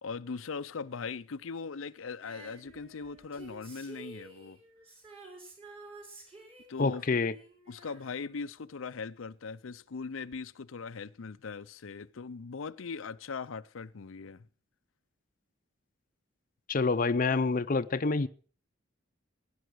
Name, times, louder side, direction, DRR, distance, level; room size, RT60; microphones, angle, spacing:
voice 1, 0.0-4.6 6.7-7.0 7.7-14.5, left 5 dB, 90° left, 0.6 m, -40 dB
Female singing, 2.2-9.2 10.3-10.4, right 3 dB, 30° right, 5.4 m, -52 dB
voice 2, 6.8-7.3 16.7-18.3, left 3 dB, 45° left, 0.6 m, -27 dB
17.5 x 10.5 x 6.2 m
head